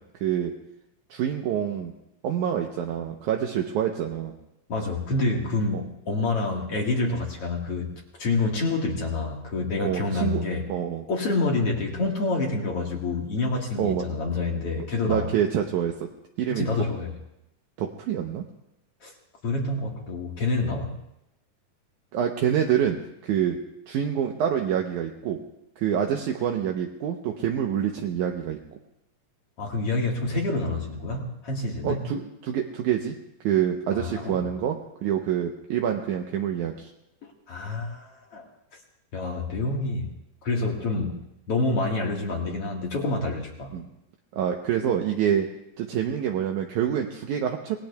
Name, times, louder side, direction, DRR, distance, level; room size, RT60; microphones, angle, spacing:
voice 1, 0.2-0.5 1.1-1.9 2.2-4.3 5.7-5.8 9.8-10.4 10.7-11.0 13.8-14.1 15.1-16.1 16.4-16.7 17.8-18.4 22.1-23.0 23.2-23.6 23.9-25.4 25.8-28.6 31.8-33.1 33.4-36.9 43.7-43.9 44.3-45.5 45.8-47.8, right 9 dB, 75° right, 2 dB, 2.1 m, -26 dB
voice 2, 4.7-10.7 11.1-15.3 16.5-17.1 19.0-19.1 19.4-21.0 29.6-32.0 33.9-34.5 37.5-38.5 39.1-40.1 40.4-43.8, left 3 dB, 50° left, 0 dB, 2.3 m, -27 dB
26.5 x 20.0 x 2.3 m, 0.85 s
omnidirectional pair, 3.9 m